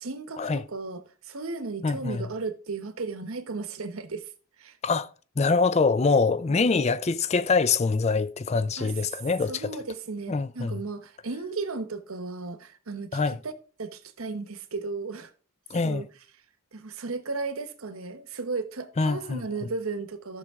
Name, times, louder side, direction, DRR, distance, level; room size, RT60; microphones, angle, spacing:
voice 1, 0.0-4.3 4.6-4.8 6.5-6.6 8.8-8.9 9.5-13.5 13.8-15.3 15.8-16.1 16.7-20.4, right 3 dB, 80° right, 1.0 m, -35 dB
voice 2, 1.8-2.2 4.8-5.1 5.4-9.8 10.3-10.8 13.1-13.4 15.7-16.0 19.0-19.4, left 4 dB, 30° left, 0.4 m, -24 dB
13.5 x 6.4 x 3.6 m
head